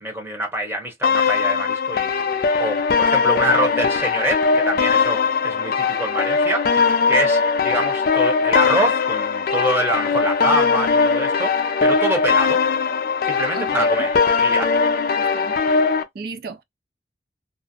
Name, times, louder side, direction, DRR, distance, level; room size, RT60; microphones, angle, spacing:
voice 1, 0.0-6.7 7.1-11.5 11.8-12.6 13.2-14.1 14.4-14.7, right 1 dB, 15° right, 0.8 m, -25 dB
sound 1, 1.0-16.0, left 5 dB, 55° left, 0.4 m, -20 dB
voice 2, 13.5-14.1 15.2-15.5 16.1-16.6, right 4 dB, 60° right, 0.4 m, -34 dB
2.4 x 2.0 x 2.7 m
head